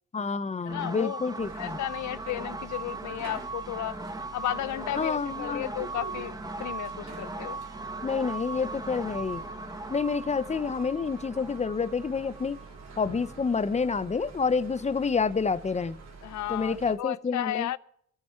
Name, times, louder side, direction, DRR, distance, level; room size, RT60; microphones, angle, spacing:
voice 1, 0.1-1.8 5.0-5.7 8.0-9.4 9.9-12.6 13.0-16.0 16.5-17.7, left 5 dB, 20° left, 0.8 m, -28 dB
voice 2, 0.7-1.2 1.6-4.0 4.3-7.6 16.2-17.8, left 14 dB, 70° left, 0.7 m, -34 dB
sound 1, 0.7-14.3, right 3 dB, 10° right, 1.2 m, -39 dB
sound 2, 1.4-16.9, right 4 dB, 60° right, 3.4 m, -47 dB
24.5 x 8.7 x 4.4 m
cardioid pair, 90°, 30 cm